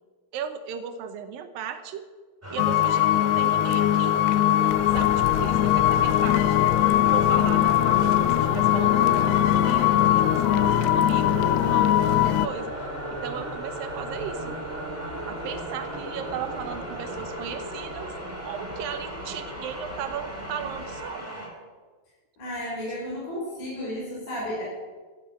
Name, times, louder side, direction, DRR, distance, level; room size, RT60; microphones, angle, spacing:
voice 1, 0.3-2.0 2.5-4.2 4.6-6.6 7.0-12.7 13.1-14.5 15.3-18.1 18.4-21.3, right 8 dB, 70° right, 9 dB, 2.5 m, -36 dB
sound 1, 2.4-21.5, right 1 dB, 5° right, 4.0 m, -35 dB
sound 2, 2.6-12.5, left 13 dB, 85° left, 2.6 m, -21 dB
Engine, 10.8-21.0, left 3 dB, 65° left, 7.7 m, -46 dB
voice 2, 22.4-24.6, left 1 dB, 45° left, -7 dB, 6.5 m, -33 dB
14.5 x 8.5 x 9.0 m, 1.4 s
omnidirectional pair, 4.6 m